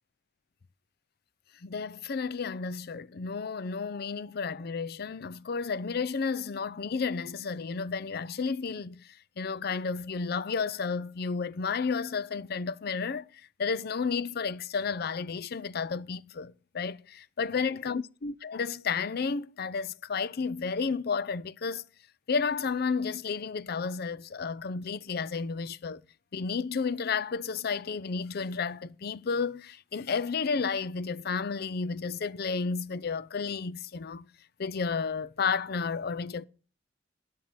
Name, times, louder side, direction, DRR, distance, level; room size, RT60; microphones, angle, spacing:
voice 1, 1.6-21.8 22.3-26.0 26.3-34.3 34.6-36.4, left 5 dB, 55° left, 0.5 m, -32 dB
11.5 x 5.6 x 8.7 m
head